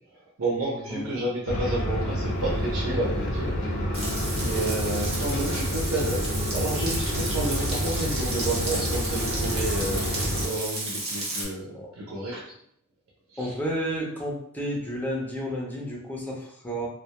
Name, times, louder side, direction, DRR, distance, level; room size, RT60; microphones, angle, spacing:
voice 1, 0.4-3.6 4.4-6.3 6.5-12.4 13.3-13.5, right 2 dB, 70° right, -4 dB, 0.6 m, -31 dB
sound 1, 1.5-10.5, equal, 55° left, 0.6 m, -28 dB
Frying (food), 3.9-11.5, right 2 dB, 30° right, 0.7 m, -33 dB
voice 2, 4.5-4.8 11.7-11.9 13.4-16.9, equal, 10° left, -3 dB, 0.5 m, -32 dB
2.2 x 2.1 x 2.8 m, 0.67 s
head